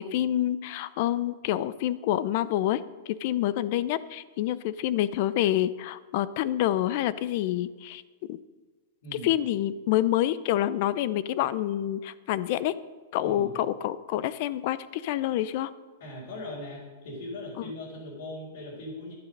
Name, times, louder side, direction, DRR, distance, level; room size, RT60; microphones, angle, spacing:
voice 1, 0.0-2.8 3.1-8.0 8.3-8.4 9.1-12.7 13.1-15.7, left 13 dB, 45° left, 16 dB, 0.5 m, -27 dB
voice 2, 16.0-19.1, left 1 dB, 65° left, -5 dB, 4.4 m, -39 dB
12.0 x 10.5 x 5.3 m, 1.3 s
supercardioid pair, 165°, 0 cm